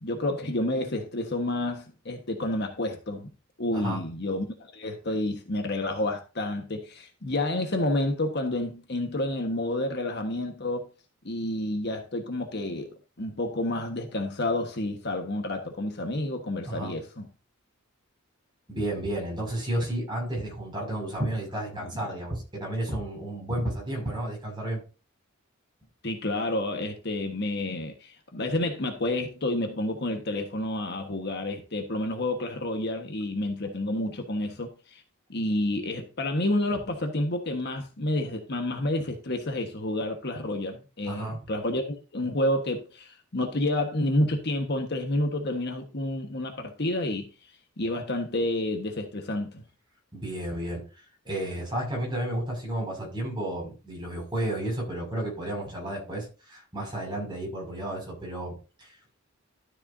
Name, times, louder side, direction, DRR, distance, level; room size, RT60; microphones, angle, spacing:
voice 1, 0.0-3.3 3.6-4.5 4.7-10.9 11.2-17.3 26.0-35.0 35.3-47.3 47.8-49.6, left 1 dB, 55° left, 1.4 m, -29 dB
voice 2, 3.7-4.0 16.6-17.0 18.7-24.8 41.0-41.4 50.1-50.8 51.2-59.0, right 1 dB, 25° right, 6.0 m, -32 dB
12.5 x 8.0 x 2.7 m
head